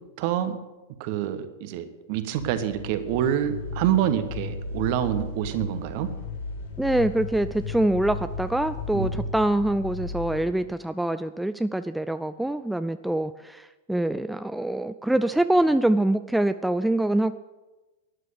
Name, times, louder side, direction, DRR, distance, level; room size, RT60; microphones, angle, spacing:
voice 1, 0.2-0.6 1.0-6.1 8.9-9.2, right 11 dB, 45° right, 11 dB, 1.3 m, -27 dB
sound 1, 2.4-10.7, left 4 dB, 70° left, 4.5 m, -35 dB
voice 2, 6.8-17.3, right 1 dB, 5° right, 11 dB, 0.4 m, -25 dB
13.0 x 9.9 x 6.6 m, 1.1 s
figure-of-eight pair, 90°, 0 cm